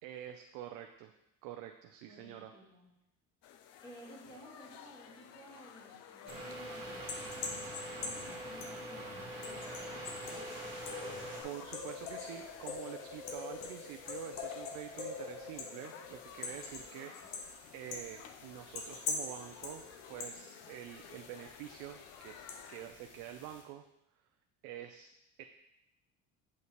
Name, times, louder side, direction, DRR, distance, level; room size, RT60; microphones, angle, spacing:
voice 1, 0.0-1.1 1.4-2.5 11.4-17.5 17.7-19.8 20.1-23.8 24.6-25.4, right 11 dB, 80° right, 5 dB, 0.6 m, -47 dB
voice 2, 2.0-2.9 3.8-10.4 17.0-17.3, equal, 10° left, -7 dB, 1.9 m, -55 dB
sound 1, 3.4-22.9, left 8 dB, 50° left, 0.5 m, -54 dB
sound 2, 6.3-23.6, left 4 dB, 75° left, 1.2 m, -45 dB
sound 3, 6.3-11.4, right 1 dB, 35° right, 2.0 m, -44 dB
7.9 x 5.7 x 3.1 m, 0.86 s
cardioid pair, 165°, 32 cm